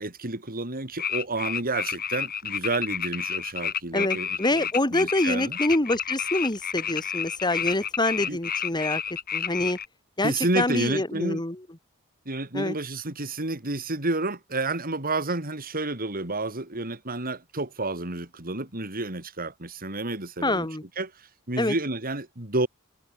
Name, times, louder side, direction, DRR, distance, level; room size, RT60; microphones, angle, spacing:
voice 1, 0.0-5.6 8.3-8.4 10.2-11.4 12.3-20.7 21.0-21.1 21.5-22.7, right 2 dB, 45° right, 4.1 m, -30 dB
sound 1, 1.0-9.9, left 8 dB, 45° left, 2.6 m, -30 dB
voice 2, 3.9-9.0 9.3-9.8 10.2-11.6 12.5-12.8 20.4-20.8 21.6-21.7, left 2 dB, 20° left, 2.6 m, -26 dB
head